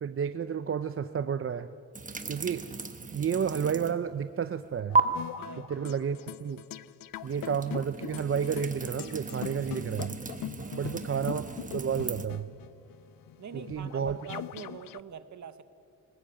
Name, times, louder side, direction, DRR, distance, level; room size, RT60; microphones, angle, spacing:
voice 1, 0.0-1.7 2.3-2.6 3.1-5.0 5.7-6.6 7.2-10.1 10.7-11.4 11.7-12.5 13.7-14.2, right 7 dB, 40° right, 11 dB, 0.5 m, -31 dB
sound 1, 1.9-4.1 4.4-5.0 7.1-12.3, right 4 dB, 25° right, 1.1 m, -34 dB
sound 2, 4.9-15.0, left 12 dB, 75° left, 0.5 m, -42 dB
voice 2, 5.4-5.7 10.6-11.0 13.4-15.6, right 8 dB, 55° right, 12 dB, 1.1 m, -44 dB
19.5 x 19.5 x 8.8 m, 2.5 s
wide cardioid pair, 175°, 34 cm